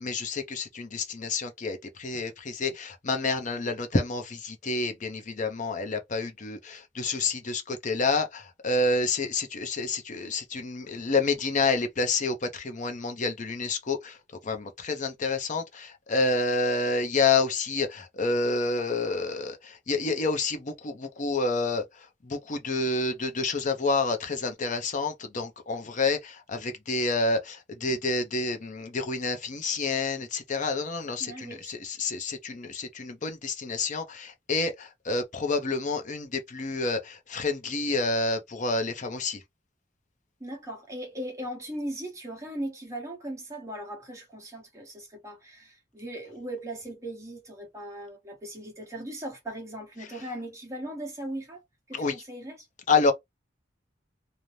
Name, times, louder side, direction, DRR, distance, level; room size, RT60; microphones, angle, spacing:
voice 1, 0.0-14.2 14.4-39.4 51.9-52.1 52.9-53.1, left 3 dB, 45° left, 0.6 m, -28 dB
voice 2, 31.2-31.7 40.4-51.6 51.9-52.7, right 1 dB, 15° right, 1.0 m, -38 dB
2.6 x 2.1 x 3.1 m
head